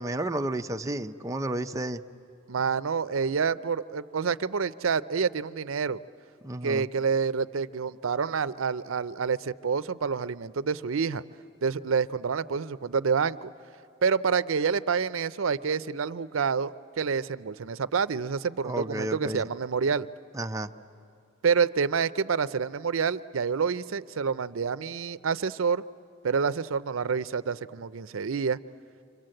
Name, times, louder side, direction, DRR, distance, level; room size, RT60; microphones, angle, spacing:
voice 1, 0.0-2.0 6.4-6.9 18.6-19.5 20.3-20.7, right 1 dB, 15° right, 6 dB, 0.6 m, -31 dB
voice 2, 2.5-6.0 6.6-11.2 11.6-13.5 14.0-20.1 21.4-25.8 26.2-28.6, right 5 dB, 75° right, 14 dB, 0.6 m, -28 dB
29.5 x 26.0 x 7.7 m, 2.6 s
head